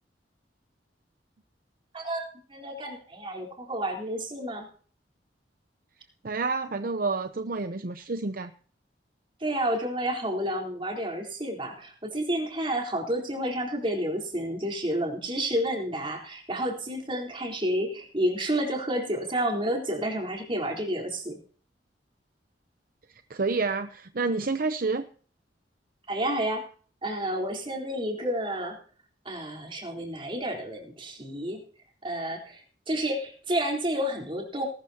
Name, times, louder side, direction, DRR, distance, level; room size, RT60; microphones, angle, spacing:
voice 1, 1.9-4.7 9.4-21.4 26.1-26.6 27.0-28.8 29.3-31.6 32.0-34.7, right 1 dB, 30° right, 1 dB, 4.0 m, -30 dB
voice 2, 6.2-8.5 23.3-25.1, right 3 dB, 50° right, 9 dB, 0.7 m, -29 dB
20.0 x 13.0 x 2.9 m, 0.43 s
head